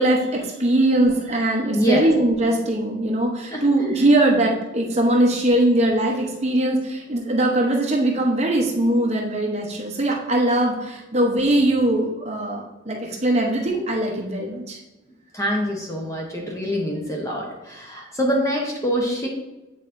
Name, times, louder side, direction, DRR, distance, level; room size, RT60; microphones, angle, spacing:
voice 1, 0.0-14.8, right 1 dB, 30° right, -1 dB, 0.8 m, -21 dB
voice 2, 1.7-2.1 3.5-3.6 15.3-19.3, equal, 15° left, -1 dB, 0.8 m, -24 dB
8.8 x 4.1 x 2.6 m, 1.0 s
head